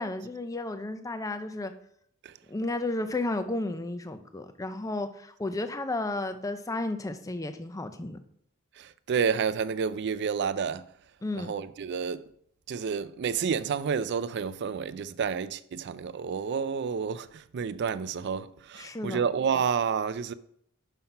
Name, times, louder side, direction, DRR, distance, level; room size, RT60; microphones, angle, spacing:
voice 1, 0.0-1.7 2.5-8.2 11.2-11.5 18.7-19.2, left 2 dB, 15° left, 0.5 m, -33 dB
voice 2, 8.8-10.8 11.4-12.2 12.7-20.3, right 6 dB, 55° right, 0.4 m, -30 dB
5.8 x 5.7 x 5.4 m
head